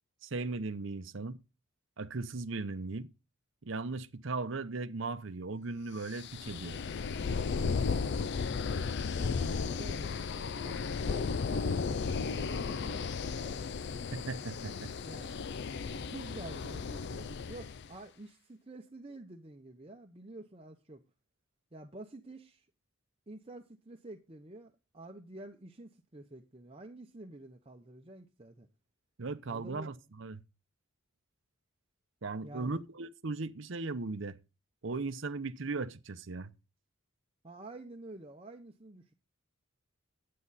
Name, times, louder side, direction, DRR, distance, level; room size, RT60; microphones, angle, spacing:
voice 1, 0.2-1.4 2.0-3.1 3.6-6.8 14.1-14.9 29.2-30.4 32.2-34.4 34.8-36.5, right 3 dB, 60° right, 0.7 m, -37 dB
sound 1, 6.1-17.9, left 5 dB, 55° left, 0.4 m, -34 dB
voice 2, 9.1-13.6 15.0-15.4 15.9-21.0 21.7-22.7 23.3-28.7 29.5-29.9 32.4-32.8 37.4-39.1, right 2 dB, 25° right, 0.8 m, -49 dB
9.7 x 8.5 x 4.1 m
head